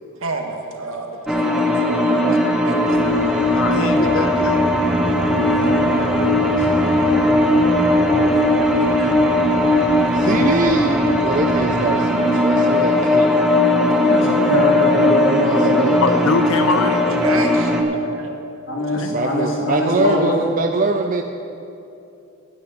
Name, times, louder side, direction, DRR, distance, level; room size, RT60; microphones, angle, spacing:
voice 1, 0.2-1.5 2.3-3.0 9.0-9.1 13.2-13.3 16.7-18.4, right 3 dB, 80° right, 3 dB, 1.5 m, -30 dB
sound 1, 1.3-17.8, left 1 dB, ahead, 0.9 m, -18 dB
sound 2, 2.8-11.9, equal, 55° right, 3.1 m, -33 dB
voice 2, 3.5-4.6 5.3-5.9 16.0-17.0 18.9-19.1, left 3 dB, 85° left, 8 dB, 0.9 m, -23 dB
voice 3, 5.6-8.9 12.4-13.3 14.0-15.9 17.9-18.1 18.7-20.5, left 1 dB, 65° left, -1 dB, 2.3 m, -25 dB
voice 4, 10.1-13.5 15.4-16.4 19.1-21.2, right 3 dB, 40° right, 5 dB, 0.4 m, -23 dB
9.5 x 8.6 x 8.3 m, 2.8 s
head